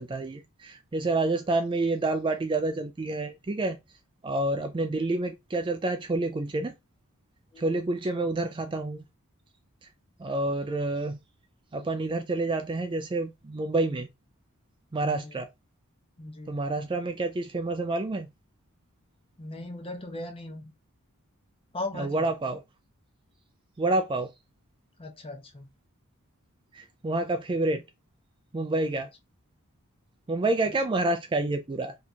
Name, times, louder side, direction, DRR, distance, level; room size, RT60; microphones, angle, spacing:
voice 1, 0.0-3.8 4.2-6.7 7.6-9.0 10.2-11.2 11.7-14.1 14.9-15.5 16.5-18.3 21.9-22.6 23.8-24.3 26.7-27.8 28.5-29.1 30.3-32.0, right 2 dB, 20° right, 0.4 m, -28 dB
voice 2, 15.0-15.4 16.2-16.6 19.4-20.7 21.7-22.3 25.0-25.7, left 2 dB, 25° left, 0.8 m, -39 dB
2.8 x 2.4 x 4.1 m
head